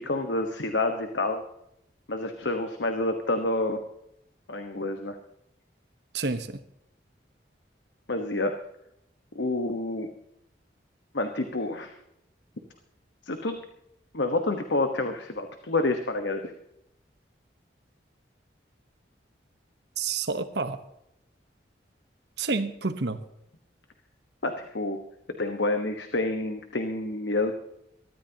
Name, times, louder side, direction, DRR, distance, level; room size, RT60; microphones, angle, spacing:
voice 1, 0.0-1.4 2.1-3.8 4.5-5.2 8.1-8.6 9.3-10.1 11.1-12.0 13.2-13.6 14.1-16.5 24.4-25.0 25.4-27.5, left 2 dB, 75° left, 6 dB, 1.2 m, -28 dB
voice 2, 6.1-6.6 20.0-20.8 22.4-23.2, right 4 dB, 65° right, 9 dB, 1.1 m, -29 dB
22.5 x 13.5 x 2.9 m, 0.79 s
head